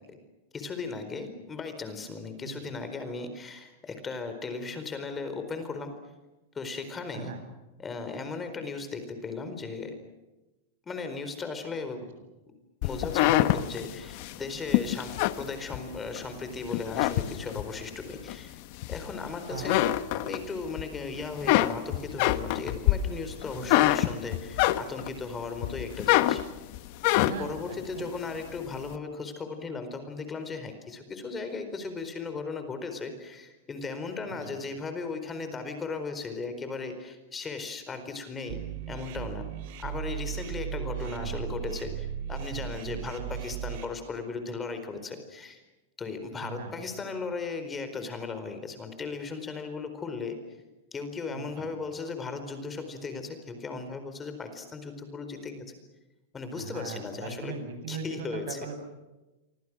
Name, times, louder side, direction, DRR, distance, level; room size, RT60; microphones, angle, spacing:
voice 1, 0.5-5.9 6.5-7.3 7.8-9.9 10.9-12.1 12.8-18.6 18.9-26.4 27.2-38.6 38.9-39.4 39.8-45.6 46.0-50.4 50.9-55.7 56.3-57.5 57.9-58.6, left 4 dB, 15° left, 8 dB, 4.4 m, -37 dB
sound 1, 12.8-16.2 16.7-17.8 18.3-19.3 19.6-20.8 21.2-25.2 25.6-27.6, left 15 dB, 55° left, 1.3 m, -25 dB
voice 2, 23.5-23.9 27.2-28.1 34.3-34.6 41.0-41.4 43.1-43.4 46.4-46.7 51.3-51.7 56.5-58.8, right 5 dB, 75° right, 6 dB, 8.0 m, -40 dB
sound 2, 38.5-43.8, right 10 dB, 60° right, 4.8 m, -36 dB
29.0 x 25.0 x 6.3 m, 1.1 s
supercardioid pair, 135°, 0 cm